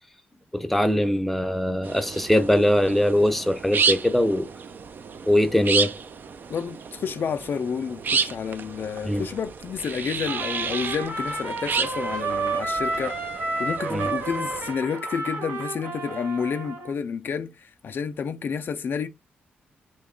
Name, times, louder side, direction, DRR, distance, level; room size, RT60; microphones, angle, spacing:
voice 1, 0.5-4.5 5.3-5.9 9.1-9.3 13.9-14.1, left 1 dB, 5° left, 0.5 m, -21 dB
sound 1, 1.8-14.7, right 5 dB, 50° right, 0.4 m, -31 dB
voice 2, 6.5-13.2 13.6-19.1, left 6 dB, 55° left, 0.3 m, -30 dB
Trumpet, 10.2-17.0, right 3 dB, 85° right, 1.2 m, -31 dB
2.9 x 2.2 x 3.6 m
cardioid pair, 70°, 4 cm